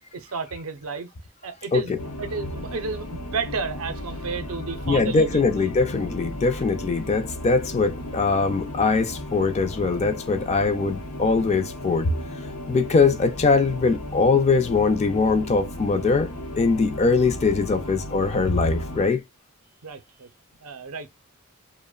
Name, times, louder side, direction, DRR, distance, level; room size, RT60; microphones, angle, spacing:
voice 1, 0.1-1.1 1.4-5.7 19.8-20.3 20.6-21.1, right 4 dB, 70° right, 0.5 m, -32 dB
sound 1, 2.0-19.1, left 1 dB, 80° left, 0.6 m, -35 dB
voice 2, 4.9-12.1 12.7-16.3 16.6-19.2, left 4 dB, 30° left, 0.3 m, -22 dB
2.8 x 2.0 x 2.2 m
head